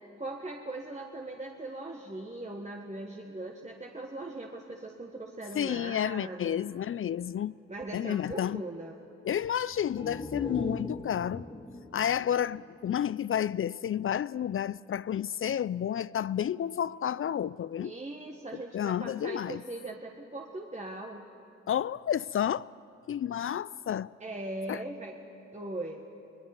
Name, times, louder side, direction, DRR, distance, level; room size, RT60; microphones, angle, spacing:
voice 1, 0.2-6.6 7.7-8.9 17.8-21.2 24.2-25.2 25.5-26.1, right 2 dB, 25° right, 1.6 m, -40 dB
voice 2, 5.5-7.5 7.9-8.6 9.2-11.5 11.9-17.9 18.5-19.6 21.7-22.7 23.1-24.1 24.7-24.8, left 9 dB, 45° left, 0.4 m, -31 dB
sound 1, 9.7-13.4 13.8-13.9, left 2 dB, 15° left, 1.6 m, -40 dB
24.0 x 19.0 x 5.9 m
supercardioid pair, 50°, 29 cm